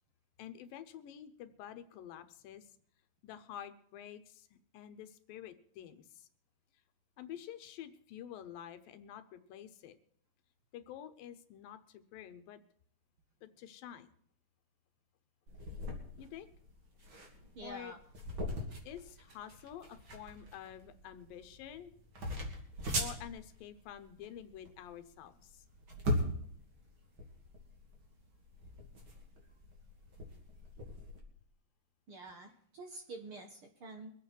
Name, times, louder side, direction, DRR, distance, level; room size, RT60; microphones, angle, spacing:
voice 1, 0.4-2.7 3.2-6.3 7.2-10.0 10.7-12.6 13.4-14.1 16.2-16.5 17.6-18.0 18.8-21.9 23.0-25.6, left 10 dB, 90° left, 10 dB, 2.7 m, -49 dB
sound 1, 15.5-31.2, equal, 40° right, 3.0 m, -41 dB
voice 2, 17.6-18.0 32.1-34.1, right 2 dB, 55° right, 4 dB, 1.7 m, -47 dB
23.5 x 8.5 x 4.6 m, 0.64 s
omnidirectional pair, 4.0 m